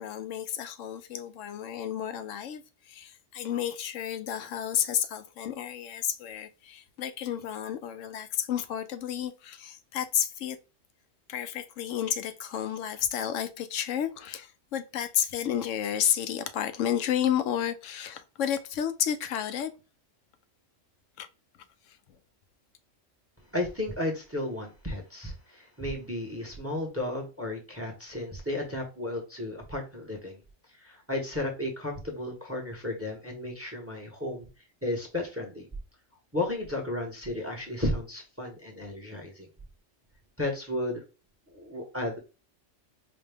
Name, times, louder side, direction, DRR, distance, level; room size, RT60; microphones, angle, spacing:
voice 1, 0.0-10.6 11.3-19.7 21.2-21.3 21.9-22.0, left 10 dB, 75° left, 0.9 m, -31 dB
voice 2, 23.5-30.4 30.7-34.5 34.8-35.7 36.3-39.5 40.4-41.0 41.5-42.2, left 1 dB, 15° right, 0.7 m, -33 dB
5.0 x 2.2 x 3.4 m
omnidirectional pair, 1.4 m